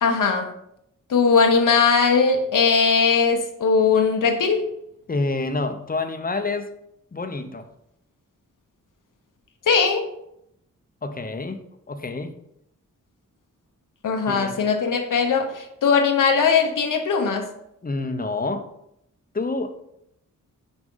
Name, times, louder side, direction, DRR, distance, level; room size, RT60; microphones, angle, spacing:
voice 1, 0.0-0.5 1.1-4.7 9.7-10.1 14.0-17.5, left 5 dB, 75° left, 4 dB, 0.9 m, -19 dB
voice 2, 5.1-6.7 7.1-7.7 11.0-12.3 14.3-14.6 17.8-18.7 19.3-19.8, left 3 dB, 25° left, 8 dB, 0.7 m, -28 dB
6.1 x 5.1 x 3.8 m, 0.79 s
cardioid pair, 75°, 32 cm